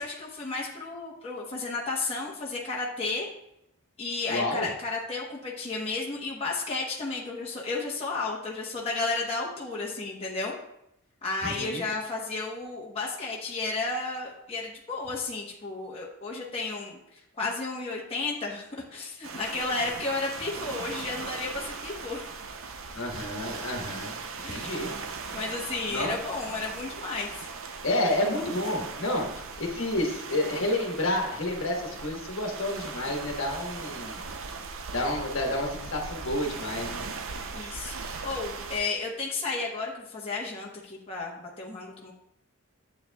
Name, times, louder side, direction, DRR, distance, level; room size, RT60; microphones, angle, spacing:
voice 1, 0.0-3.3 4.0-10.6 11.2-17.0 17.4-22.3 24.4-24.7 25.3-27.5 37.5-42.1, left 3 dB, 25° left, -4 dB, 1.0 m, -33 dB
voice 2, 4.3-4.7 11.4-11.8 22.9-24.2 24.5-24.9 25.9-26.1 27.8-29.2 29.6-34.2 34.9-37.1, left 1 dB, 60° left, 1 dB, 1.3 m, -30 dB
sound 1, 19.2-38.8, right 4 dB, 65° right, 0.6 m, -39 dB
9.5 x 8.0 x 2.3 m, 0.80 s
head